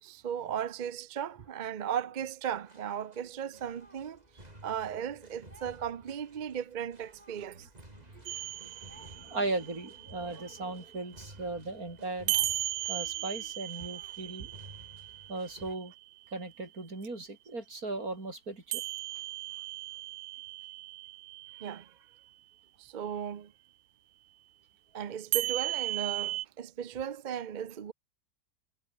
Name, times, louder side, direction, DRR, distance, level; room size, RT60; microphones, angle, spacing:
voice 1, 0.0-4.2 4.6-7.7 8.1-8.3 14.4-14.5 21.6-22.0 22.8-23.5 24.9-27.9, right 8 dB, 45° right, 0.6 m, -36 dB
sound 1, 2.6-15.8, right 1 dB, 25° right, 5.7 m, -55 dB
voice 2, 8.1-12.3 12.9-14.5 15.3-15.9 16.3-18.8, right 2 dB, 70° right, 5.4 m, -38 dB
sound 2, 8.3-11.2 12.3-16.4 18.7-21.8 25.3-26.5, right 16 dB, 85° right, 1.1 m, -36 dB
omnidirectional pair, 1.6 m